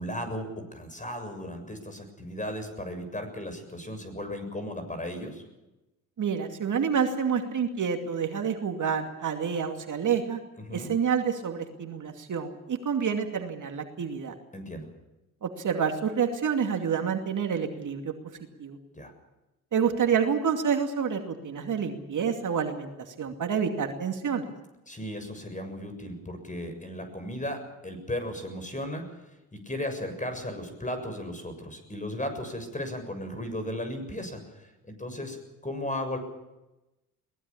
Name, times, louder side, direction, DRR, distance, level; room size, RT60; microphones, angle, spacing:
voice 1, 0.0-5.4 10.6-10.9 14.5-14.9 18.9-19.1 24.9-29.1 29.5-36.2, left 1 dB, 20° left, 8 dB, 7.1 m, -36 dB
voice 2, 6.2-10.4 10.7-14.3 15.4-18.1 18.6-18.8 19.7-24.5, right 7 dB, 45° right, 4 dB, 2.5 m, -28 dB
22.5 x 19.5 x 7.2 m, 0.99 s
hypercardioid pair, 55°, 42 cm